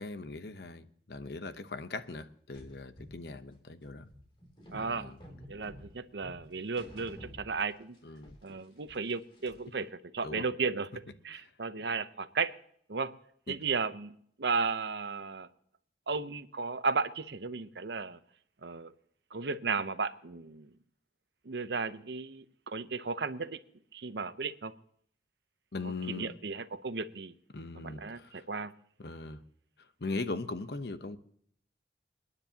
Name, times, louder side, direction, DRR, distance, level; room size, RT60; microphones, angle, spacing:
voice 1, 0.0-4.1 4.7-5.2 8.0-8.4 10.2-10.4 11.3-11.4 13.5-13.6 25.7-26.4 27.5-28.4 29.0-29.4 30.0-31.2, left 3 dB, 70° left, 11 dB, 0.9 m, -40 dB
sound 1, 2.5-9.8, equal, 30° left, 2.9 m, -52 dB
voice 2, 4.7-5.1 5.5-8.0 8.4-10.9 11.2-12.5 12.9-13.1 13.5-15.5 16.1-18.2 18.6-18.9 19.3-20.7 21.4-23.6 23.9-24.7 25.8-27.3 27.8-28.7, right 4 dB, 80° right, 12 dB, 0.8 m, -34 dB
28.5 x 9.9 x 2.9 m, 0.63 s
head